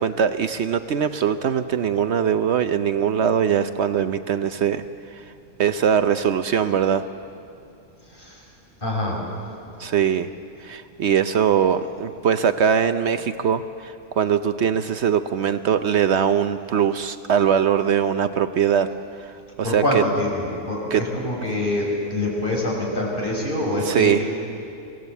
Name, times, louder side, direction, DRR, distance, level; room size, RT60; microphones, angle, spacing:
voice 1, 0.0-4.8 5.1-5.2 5.6-7.0 9.8-10.3 10.6-18.9 19.2-20.0 20.9-21.0 23.8-24.2, right 8 dB, 65° right, 10 dB, 0.9 m, -21 dB
voice 2, 8.8-9.2 19.6-24.1, left 1 dB, 45° left, -3 dB, 5.7 m, -25 dB
25.0 x 17.0 x 8.2 m, 2.6 s
omnidirectional pair, 1.3 m